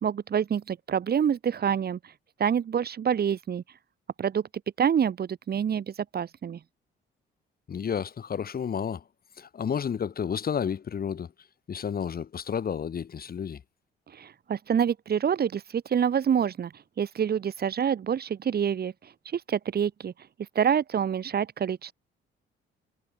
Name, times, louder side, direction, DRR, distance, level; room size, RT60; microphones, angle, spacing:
voice 1, 0.0-2.0 2.4-3.6 4.2-4.4 4.8-6.6 14.1-16.7 17.0-18.9 19.3-20.1 20.5-21.9, right 8 dB, 50° right, 2.4 m, -26 dB
voice 2, 7.7-9.0 9.4-11.3 11.7-13.6, left 7 dB, 50° left, 3.2 m, -31 dB
cardioid pair, 90°, 20 cm